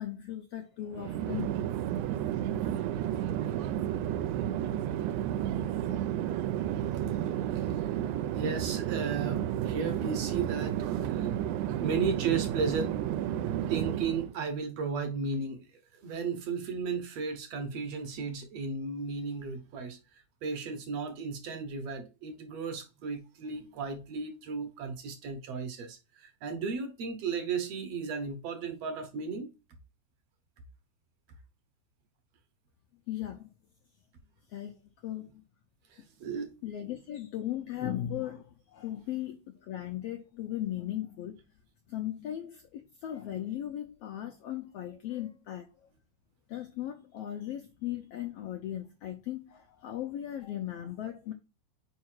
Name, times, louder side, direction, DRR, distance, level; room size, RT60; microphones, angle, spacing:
voice 1, 0.0-1.5 33.1-33.5 34.5-35.3 36.6-41.3 41.9-45.7 46.5-51.3, left 12 dB, 80° left, 1.4 m, -37 dB
Chatter / Fixed-wing aircraft airplane, 0.9-14.3, right 11 dB, 80° right, 2.0 m, -32 dB
voice 2, 6.7-8.0 8.3-11.3 11.8-13.0 13.7-15.6 15.9-29.5 35.9-36.5, right 5 dB, 65° right, 1.7 m, -35 dB
4.9 x 4.7 x 4.4 m
omnidirectional pair, 3.6 m